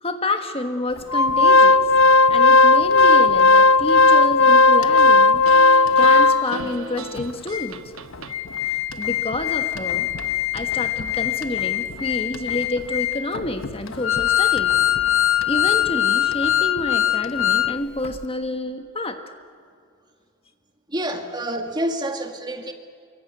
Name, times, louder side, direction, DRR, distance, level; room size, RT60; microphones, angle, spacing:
voice 1, 0.0-1.8 2.3-5.4 5.9-7.8 9.0-10.1 10.5-14.7 15.5-19.2, left 2 dB, 30° left, 7 dB, 1.5 m, -28 dB
Organ, 1.1-6.7 7.2-7.3 7.5-7.7 8.1-17.7 18.0-18.2, left 4 dB, 70° left, 1.0 m, -17 dB
sound 1, 2.5-3.5 4.0-5.1 5.5-8.3, right 3 dB, 90° right, 1.1 m, -37 dB
voice 2, 20.9-22.7, right 1 dB, 20° right, 5 dB, 2.0 m, -28 dB
25.5 x 23.5 x 9.4 m, 2.2 s
head